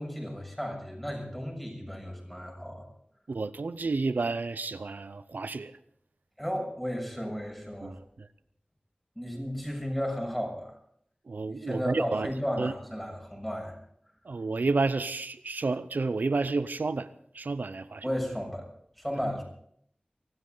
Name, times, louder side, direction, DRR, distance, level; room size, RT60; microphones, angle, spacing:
voice 1, 0.0-2.8 6.4-7.9 9.1-10.7 11.6-13.7 18.0-18.6 19.0-19.4, equal, 5° left, 1 dB, 6.6 m, -34 dB
voice 2, 3.3-5.7 7.8-8.3 11.3-12.3 12.6-12.7 14.2-17.1 17.3-18.1, right 3 dB, 80° right, 13 dB, 0.6 m, -30 dB
24.0 x 13.0 x 3.9 m, 0.67 s
wide cardioid pair, 55°, 3 cm